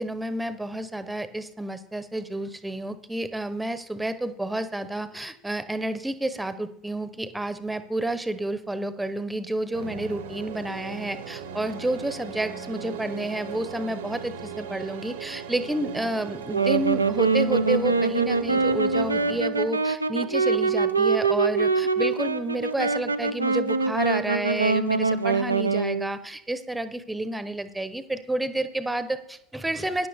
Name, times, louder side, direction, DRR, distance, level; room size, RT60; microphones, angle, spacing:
voice 1, 0.0-30.1, right 1 dB, 10° right, 12 dB, 0.9 m, -30 dB
sound 1, 9.7-19.4, right 6 dB, 70° right, 1.1 m, -38 dB
Wind instrument woodwind instrument, 16.4-26.1, right 4 dB, 90° right, 0.5 m, -24 dB
14.0 x 10.0 x 3.5 m, 0.74 s
figure-of-eight pair, 70°, 0 cm